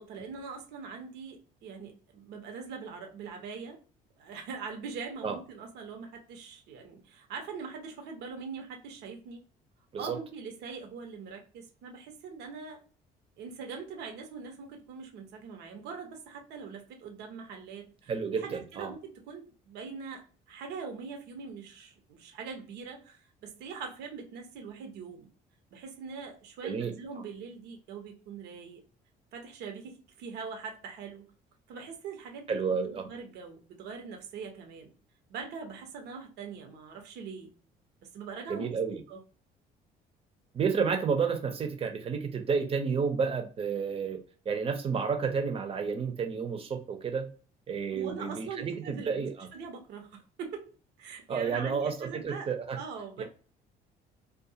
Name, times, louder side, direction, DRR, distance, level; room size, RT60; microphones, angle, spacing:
voice 1, 0.0-3.8 4.2-9.4 10.0-12.8 13.4-25.3 25.7-28.8 29.3-31.2 31.7-32.5 32.8-34.9 35.3-37.5 38.0-38.7 39.1-39.2 47.9-50.7 51.0-52.5 52.7-53.2, right 5 dB, 80° right, 3 dB, 1.0 m, -42 dB
voice 2, 18.1-18.9 26.6-26.9 32.5-33.1 38.5-39.0 40.5-47.3 47.7-49.5 51.3-52.8 53.2-53.3, right 5 dB, 35° right, 6 dB, 0.7 m, -31 dB
2.4 x 2.3 x 2.7 m, 0.39 s
cardioid pair, 110°, 17 cm